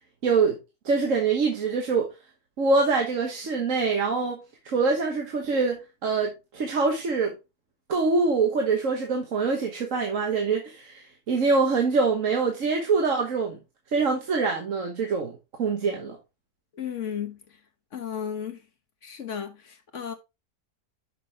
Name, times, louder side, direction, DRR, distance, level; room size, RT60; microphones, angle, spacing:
voice 1, 0.2-0.6 0.8-2.1 2.6-7.3 7.9-13.6 13.9-16.2, right 4 dB, 60° right, 1.5 m, -24 dB
voice 2, 16.7-17.6 17.9-18.6 19.0-20.1, left 8 dB, 55° left, 1.4 m, -34 dB
6.6 x 6.1 x 3.5 m
omnidirectional pair, 1.6 m